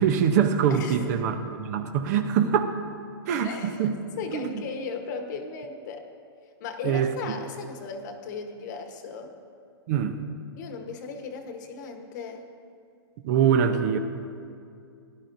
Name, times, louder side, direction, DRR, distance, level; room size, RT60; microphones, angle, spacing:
voice 1, 0.0-2.7 3.3-4.0 4.3-4.5 6.8-7.1 9.9-10.2 13.2-14.0, right 8 dB, 40° right, 8 dB, 0.7 m, -23 dB
voice 2, 0.7-1.2 3.4-3.9 4.1-6.1 6.6-9.3 10.6-12.4, left 5 dB, 45° left, 5 dB, 1.2 m, -36 dB
17.0 x 12.0 x 2.7 m, 2.4 s
hypercardioid pair, 160°, 14 cm